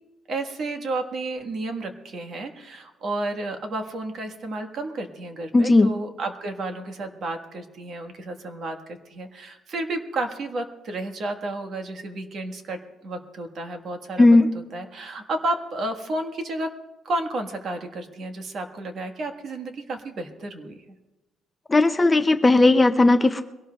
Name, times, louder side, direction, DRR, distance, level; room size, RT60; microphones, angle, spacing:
voice 1, 0.3-14.4 14.7-16.7 17.0-20.8, right 2 dB, 45° right, 5 dB, 1.4 m, -32 dB
voice 2, 5.5-5.9 14.2-14.5 21.7-23.4, left 2 dB, 15° left, 8 dB, 0.4 m, -16 dB
23.0 x 17.5 x 2.3 m, 1.1 s
cardioid pair, 155°, 0 cm